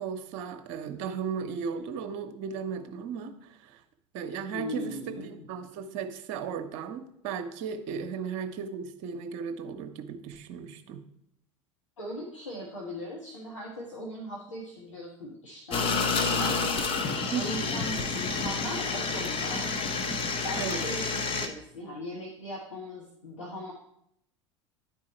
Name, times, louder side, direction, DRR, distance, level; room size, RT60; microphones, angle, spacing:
voice 1, 0.0-3.8 4.1-11.0 17.3-18.2 20.6-20.9, right 6 dB, 50° right, 8 dB, 0.9 m, -36 dB
voice 2, 4.5-5.5 12.0-16.6 17.3-19.7 20.4-23.7, equal, 75° left, -3 dB, 1.3 m, -39 dB
sound 1, 15.7-21.5, left 4 dB, 35° left, 1.0 m, -29 dB
10.5 x 4.6 x 4.2 m, 0.75 s
figure-of-eight pair, 75°, 16 cm